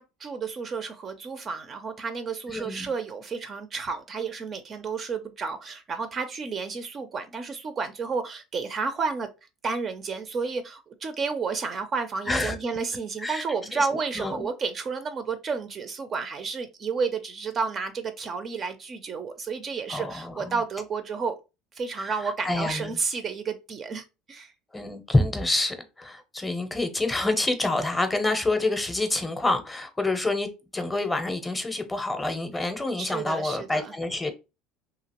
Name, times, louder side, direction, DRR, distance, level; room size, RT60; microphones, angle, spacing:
voice 1, 0.0-9.3 9.6-21.4 21.7-24.5 33.0-33.9, right 5 dB, 30° right, 0.4 m, -31 dB
voice 2, 2.5-2.9 12.3-12.6 13.2-13.4 13.7-13.9 14.1-14.5 19.9-20.6 22.0-22.1 22.4-22.9 24.7-34.3, left 2 dB, 10° left, 0.6 m, -27 dB
2.8 x 2.8 x 2.9 m
supercardioid pair, 130°, 0 cm